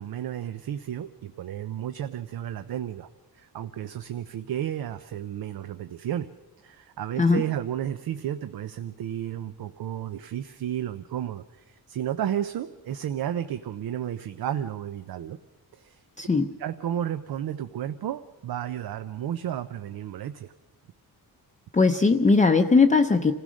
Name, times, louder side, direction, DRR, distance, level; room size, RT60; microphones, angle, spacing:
voice 1, 0.0-3.1 3.3-6.3 6.6-15.4 15.7-16.0 16.6-20.5, right 10 dB, 70° right, 11 dB, 0.7 m, -32 dB
voice 2, 16.2-16.5 21.7-23.3, left 4 dB, 20° left, 4 dB, 0.6 m, -19 dB
26.0 x 16.0 x 6.3 m, 1.3 s
wide cardioid pair, 125°, 38 cm